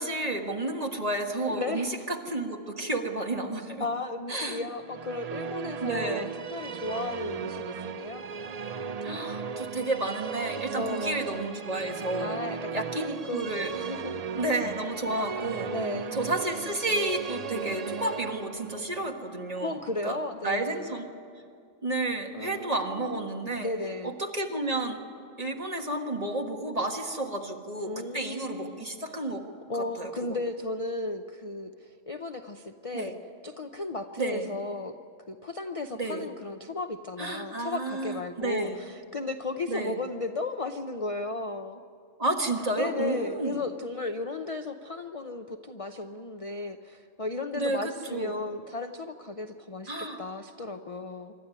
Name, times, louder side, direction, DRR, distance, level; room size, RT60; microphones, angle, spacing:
voice 1, 0.0-3.9 4.3-4.7 5.8-6.3 9.0-12.4 12.7-13.7 14.3-15.7 16.1-20.2 20.4-21.1 21.8-23.7 24.0-25.0 25.4-29.4 29.8-30.1 32.9-33.1 34.2-34.5 35.9-36.3 37.2-38.8 39.7-40.0 42.2-43.6 47.5-48.4 49.9-50.2, right 2 dB, 30° right, 2 dB, 1.7 m, -31 dB
voice 2, 1.5-2.1 3.8-8.2 10.7-11.6 12.2-13.5 13.7-14.2 15.7-16.2 19.6-20.9 22.3-24.2 27.9-28.8 29.7-33.1 33.4-34.9 35.3-41.8 42.8-51.3, left 2 dB, 35° left, 7 dB, 0.6 m, -35 dB
Musical instrument, 4.7-20.2, right 6 dB, 50° right, 0.5 m, -37 dB
26.0 x 12.5 x 9.8 m, 2.4 s
omnidirectional pair, 1.3 m